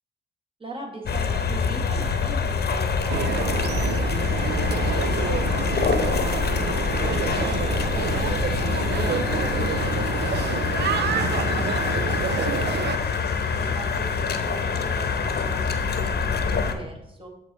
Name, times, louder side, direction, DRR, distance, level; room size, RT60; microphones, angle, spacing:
voice 1, 0.6-4.1 4.5-9.5 10.0-10.7 11.1-13.2 13.5-17.3, right 2 dB, 30° right, 1 dB, 1.9 m, -41 dB
sound 1, 1.1-16.7, left 5 dB, 55° left, 0.9 m, -25 dB
sound 2, 3.1-13.0, right 7 dB, 60° right, 0.5 m, -28 dB
8.0 x 4.2 x 4.2 m, 0.82 s
supercardioid pair, 55°, 19 cm